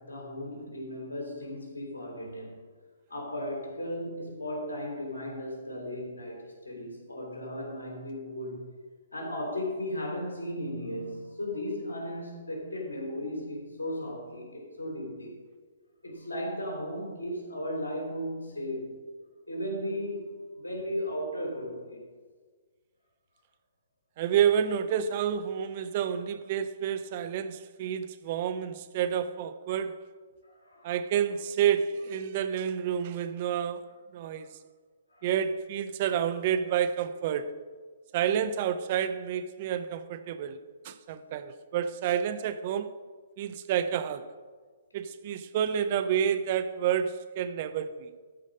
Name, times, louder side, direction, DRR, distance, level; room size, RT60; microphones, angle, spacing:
voice 1, 0.0-2.6 3.1-8.6 9.1-15.3 16.0-19.0 19.5-22.0 30.4-31.0 34.3-34.4 35.1-35.3, left 1 dB, 75° left, 3.2 m, -36 dB
voice 2, 24.2-30.0 30.8-33.8 34.1-34.5 35.2-37.6 38.1-40.6 40.8-43.0 43.4-44.3 44.9-48.1, right 9 dB, 40° right, 0.6 m, -29 dB
13.5 x 5.0 x 5.3 m
figure-of-eight pair, 125°, 0 cm